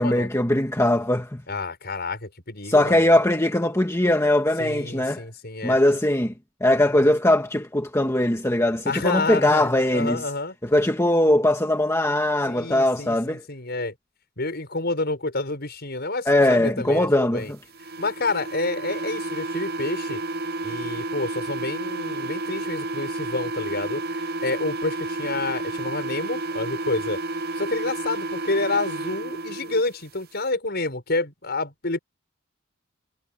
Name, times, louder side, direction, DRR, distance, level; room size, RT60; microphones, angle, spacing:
voice 1, 0.0-1.4 2.7-5.2 5.6-6.3 6.6-10.2 10.6-13.4 16.3-17.6, left 1 dB, 15° left, 1.5 m, -20 dB
voice 2, 1.5-3.2 4.6-5.8 8.9-9.6 9.9-10.5 12.5-13.9 14.4-17.5 18.0-20.2 20.6-27.2 27.5-32.0, left 2 dB, 55° left, 6.7 m, -29 dB
sound 1, 17.7-29.8, right 2 dB, 50° right, 0.9 m, -31 dB
head